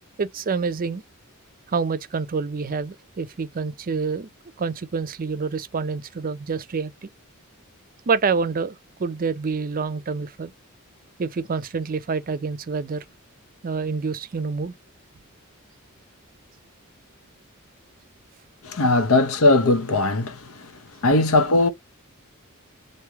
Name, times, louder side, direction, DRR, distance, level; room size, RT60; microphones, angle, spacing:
voice 1, 0.2-1.0 1.7-4.3 4.6-7.1 8.1-10.5 11.2-13.0 13.6-14.8, right 5 dB, 40° right, 0.5 m, -27 dB
voice 2, 18.6-20.6 21.0-21.7, left 2 dB, 70° left, 0.8 m, -19 dB
3.2 x 2.7 x 4.5 m
head